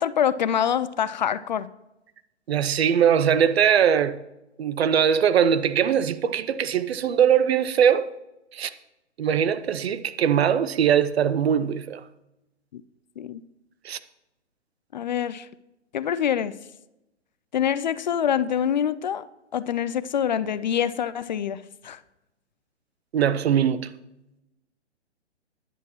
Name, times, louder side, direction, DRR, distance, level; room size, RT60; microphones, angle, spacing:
voice 1, 0.0-1.7 12.7-12.8 13.2-13.4 14.9-15.5 15.9-16.6 17.5-19.2 19.5-22.0, left 9 dB, 40° left, 0.4 m, -25 dB
voice 2, 2.5-4.2 4.6-8.1 8.5-8.7 9.2-12.0 13.8-14.0 23.1-23.9, right 8 dB, 60° right, 0.8 m, -21 dB
15.0 x 10.5 x 3.0 m
hypercardioid pair, 130°, 35 cm